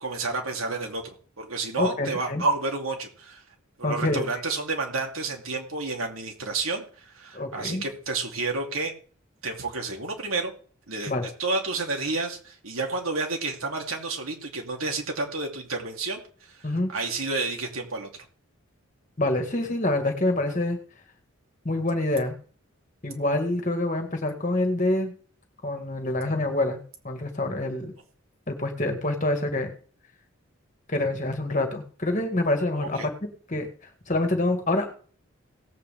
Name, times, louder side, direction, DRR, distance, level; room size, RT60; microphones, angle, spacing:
voice 1, 0.0-3.4 3.8-8.9 9.4-10.5 10.9-11.1 11.4-16.2 16.5-18.1 32.8-33.1, right 3 dB, 75° right, 2 dB, 2.7 m, -30 dB
voice 2, 1.8-2.4 3.8-4.2 7.3-7.9 11.1-11.3 16.6-16.9 19.2-20.8 21.7-22.4 23.0-25.1 25.6-26.8 27.0-28.0 28.5-29.7 30.9-33.1 33.5-33.7 34.1-34.9, left 2 dB, 35° left, 5 dB, 1.9 m, -26 dB
18.0 x 8.4 x 3.6 m, 0.43 s
head